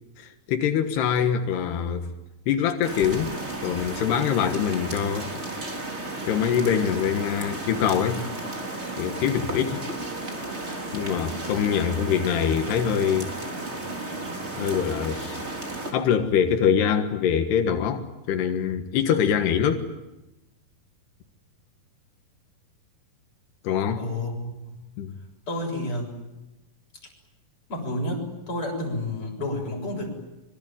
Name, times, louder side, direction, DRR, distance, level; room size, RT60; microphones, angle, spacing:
voice 1, 0.2-2.1 2.5-3.3 3.6-5.3 6.3-8.2 9.0-9.8 10.9-13.3 14.6-15.4 15.9-19.9 23.6-24.0 25.0-25.1, left 8 dB, 90° left, 6 dB, 3.6 m, -24 dB
sound 1, 2.8-15.9, right 2 dB, 15° right, 3.6 m, -33 dB
voice 2, 24.0-24.5 25.5-26.1 27.7-30.1, left 1 dB, 35° left, 1 dB, 8.0 m, -30 dB
25.5 x 24.5 x 9.1 m, 0.97 s
omnidirectional pair, 4.6 m